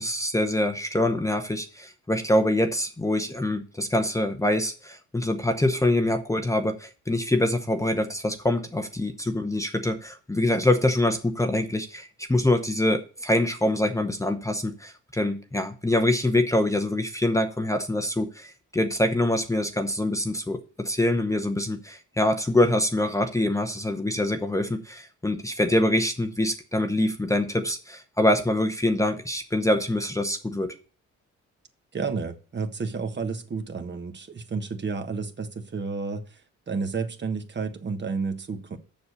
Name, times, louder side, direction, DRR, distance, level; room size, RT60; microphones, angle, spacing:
voice 1, 0.0-30.7, left 1 dB, 10° left, 0.8 m, -25 dB
voice 2, 31.9-36.2 36.7-38.8, right 4 dB, 35° right, 1.3 m, -31 dB
7.1 x 6.5 x 6.7 m
cardioid pair, 90°, 30 cm